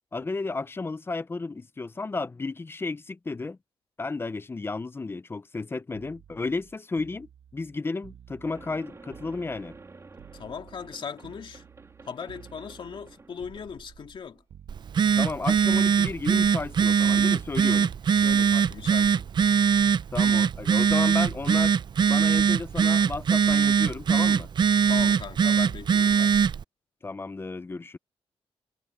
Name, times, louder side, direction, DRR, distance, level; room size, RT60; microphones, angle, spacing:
voice 1, 0.1-3.6 4.0-9.8 15.2-17.9 20.1-24.5 27.0-28.0, left 3 dB, 25° left, 0.6 m, -33 dB
sound 1, 5.9-9.9 10.2-14.2 14.5-15.3 15.6-16.5 16.8-20.8 22.0-22.2, right 9 dB, 90° right, 2.0 m, -52 dB
sound 2, 8.4-14.4, right 3 dB, 30° right, 2.8 m, -50 dB
voice 2, 10.3-11.6 12.0-14.4 18.1-19.3 24.8-26.3, left 6 dB, 55° left, 2.5 m, -38 dB
Telephone, 14.7-26.6, right 7 dB, 45° right, 0.5 m, -22 dB
wide cardioid pair, 130°, 10 cm